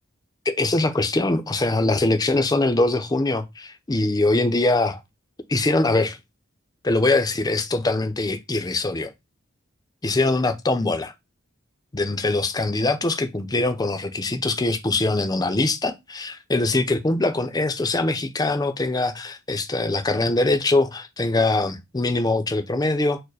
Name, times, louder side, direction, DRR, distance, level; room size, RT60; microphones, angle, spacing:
voice 1, 0.5-5.0 5.5-6.2 6.8-9.1 10.0-11.1 11.9-23.2, left 2 dB, 20° left, 0.5 m, -22 dB
4.6 x 2.1 x 4.6 m
head